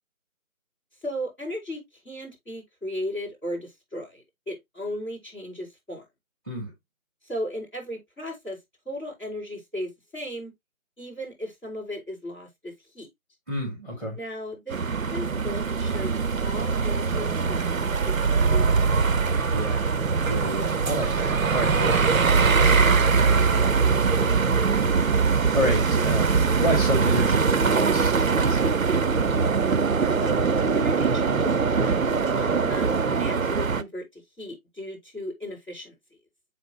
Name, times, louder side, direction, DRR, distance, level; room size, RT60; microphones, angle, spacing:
voice 1, 1.0-6.1 7.2-8.6 8.9-10.5 11.0-13.1 14.2-14.8 15.1-16.1 16.4-19.1 24.6-25.0 30.2-36.0, equal, 10° left, 5.2 m, -36 dB
voice 2, 13.5-14.2 19.5-20.0 20.3-24.9 25.3-29.1, equal, 10° right, 1.3 m, -31 dB
sound 1, 14.7-33.8, right 5 dB, 70° right, 0.7 m, -22 dB
8.1 x 4.3 x 3.1 m
figure-of-eight pair, 170°, 42 cm